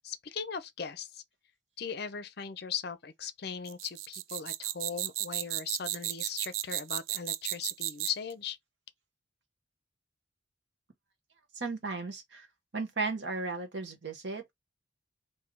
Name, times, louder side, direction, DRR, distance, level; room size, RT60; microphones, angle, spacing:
voice 1, 0.0-1.2 1.8-8.6, left 7 dB, 55° left, 0.6 m, -39 dB
sound 1, 3.7-8.3, right 15 dB, 85° right, 0.3 m, -34 dB
voice 2, 11.5-12.5 12.7-14.5, right 3 dB, 60° right, 1.1 m, -35 dB
3.7 x 2.7 x 3.2 m
head